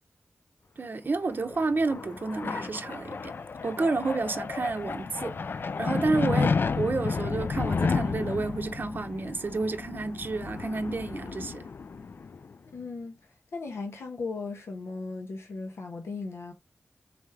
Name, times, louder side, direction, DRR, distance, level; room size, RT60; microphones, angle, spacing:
voice 1, 0.8-3.3 3.6-5.3 5.8-11.7, right 3 dB, 50° right, 0.6 m, -30 dB
sound 1, 1.3-12.5, left 4 dB, 55° left, 0.3 m, -32 dB
voice 2, 12.6-13.2 13.5-16.5, left 4 dB, 90° left, 0.9 m, -37 dB
4.1 x 3.4 x 3.3 m
wide cardioid pair, 75°, 4 cm